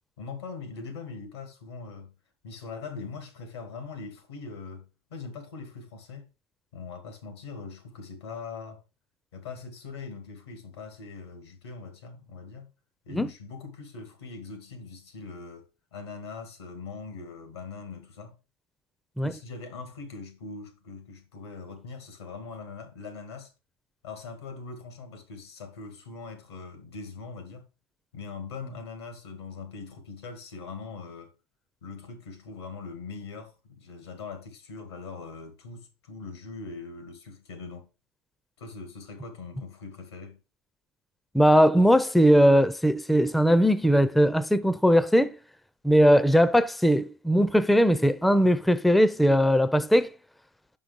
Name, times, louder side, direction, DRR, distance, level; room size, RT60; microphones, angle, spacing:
voice 1, 0.2-2.1 2.4-4.8 5.1-6.3 6.7-8.8 9.3-12.7 13.1-18.4 19.2-23.5 24.0-27.7 28.1-31.3 31.8-37.9 38.6-40.4, left 4 dB, 90° left, 2.1 m, -41 dB
voice 2, 41.3-45.4 45.8-50.1, equal, ahead, 0.5 m, -20 dB
5.7 x 5.5 x 5.1 m
hypercardioid pair, 90°, 13 cm